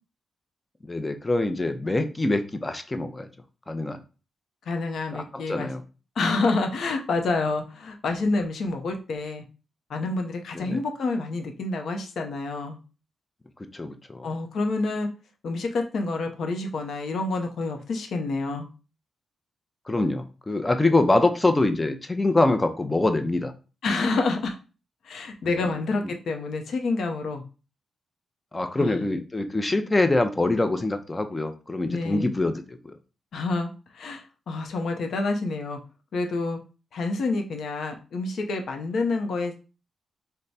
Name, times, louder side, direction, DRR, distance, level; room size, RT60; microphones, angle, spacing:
voice 1, 0.8-3.3 3.7-4.0 5.1-5.8 10.5-10.8 13.7-14.3 19.9-23.5 25.5-25.7 28.5-32.9, left 2 dB, 25° left, 8 dB, 0.6 m, -24 dB
voice 2, 4.7-5.7 6.2-9.4 9.9-12.8 14.2-15.1 15.4-18.7 23.8-24.6 25.0-27.4 28.8-29.0 31.9-32.3 33.3-33.7 33.9-35.8 36.1-36.6 36.9-39.5, left 3 dB, 70° left, 4 dB, 0.7 m, -28 dB
3.2 x 2.2 x 4.0 m, 0.33 s
supercardioid pair, 45°, 0 cm